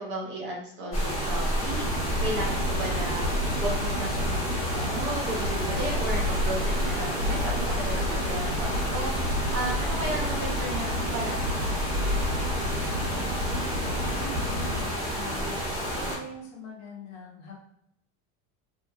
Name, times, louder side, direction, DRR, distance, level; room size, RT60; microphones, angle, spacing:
voice 1, 0.0-1.9 2.2-3.3 3.6-4.4 4.7-12.2, right 1 dB, 25° right, -2 dB, 0.5 m, -35 dB
sound 1, 0.9-16.2, equal, 30° left, 1.1 m, -30 dB
sound 2, 1.7-14.9, left 1 dB, 80° right, 0.9 m, -31 dB
voice 2, 13.1-14.7 15.1-17.6, left 2 dB, 50° left, -2 dB, 1.0 m, -43 dB
2.8 x 2.6 x 2.2 m, 0.76 s
supercardioid pair, 160°, 43 cm